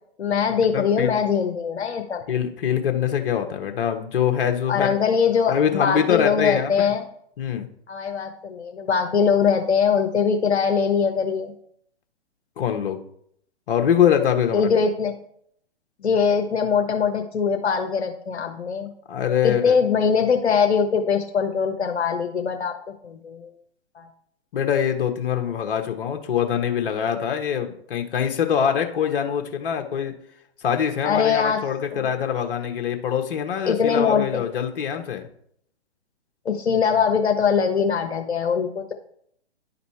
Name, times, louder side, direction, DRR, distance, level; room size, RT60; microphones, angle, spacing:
voice 1, 0.2-2.2 4.7-7.0 7.9-11.5 14.5-15.2 16.0-18.9 19.4-22.7 23.0-23.5 23.9-24.1 31.0-31.6 31.9-32.1 33.7-34.4 36.4-38.9, left 6 dB, 75° left, 4 dB, 1.0 m, -22 dB
voice 2, 0.7-1.1 2.3-5.0 5.5-6.9 7.4-7.7 12.6-13.0 13.7-14.7 19.1-19.7 24.5-30.1 30.6-35.2, left 8 dB, 55° left, 5 dB, 1.2 m, -23 dB
10.5 x 4.3 x 4.2 m, 0.68 s
figure-of-eight pair, 125°, 33 cm